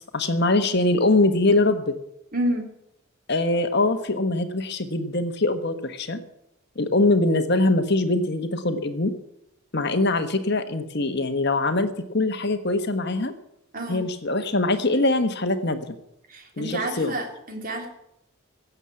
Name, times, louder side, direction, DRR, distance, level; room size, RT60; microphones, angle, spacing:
voice 1, 0.0-2.0 3.3-6.2 6.7-9.1 9.7-13.3 13.9-15.9 16.6-17.1, left 2 dB, 50° left, 8 dB, 1.4 m, -23 dB
voice 2, 2.3-2.7 13.7-14.0 16.3-17.9, right 1 dB, 40° right, 2 dB, 3.6 m, -29 dB
16.0 x 8.3 x 9.6 m, 0.79 s
head